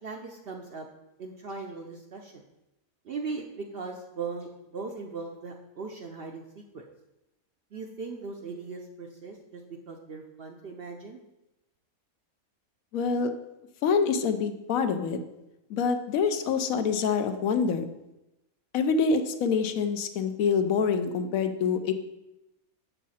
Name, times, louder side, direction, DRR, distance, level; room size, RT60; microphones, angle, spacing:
voice 1, 0.0-0.9 1.2-2.4 3.0-6.8 7.7-11.2, right 4 dB, 55° right, 2 dB, 0.7 m, -39 dB
voice 2, 12.9-13.3 13.8-15.2 15.7-17.8 18.7-21.9, left 5 dB, 75° left, 8 dB, 1.0 m, -26 dB
7.3 x 5.7 x 4.1 m, 0.92 s
omnidirectional pair, 1.5 m